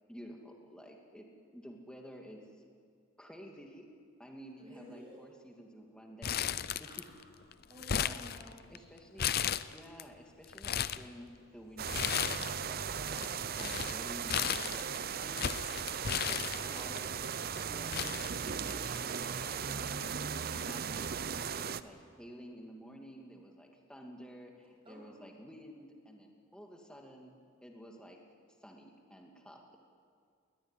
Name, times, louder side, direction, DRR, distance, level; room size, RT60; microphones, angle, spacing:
voice 1, 0.1-1.3 1.5-2.4 3.2-3.9 4.2-6.9 7.9-8.3 8.7-9.3 9.7-13.3 13.6-16.4 16.7-17.2 17.7-20.2 20.5-21.1 21.6-28.2 28.6-29.6, equal, 5° left, 1 dB, 2.5 m, -52 dB
voice 2, 4.6-5.3 6.8-8.9 15.9-17.2 24.8-25.2, equal, 25° right, -2 dB, 7.5 m, -55 dB
Crumpling crinkling, 6.2-7.2 7.5-8.8 9.2-10.0 10.4-11.0 11.9-12.7 12.9-17.0 17.6-17.7 17.9-19.0 19.3-19.4 20.3-20.6, left 9 dB, 50° left, 0.6 m, -35 dB
sound 1, 11.8-21.8, right 7 dB, 45° right, 0.6 m, -37 dB
21.5 x 18.5 x 9.9 m, 2.1 s
head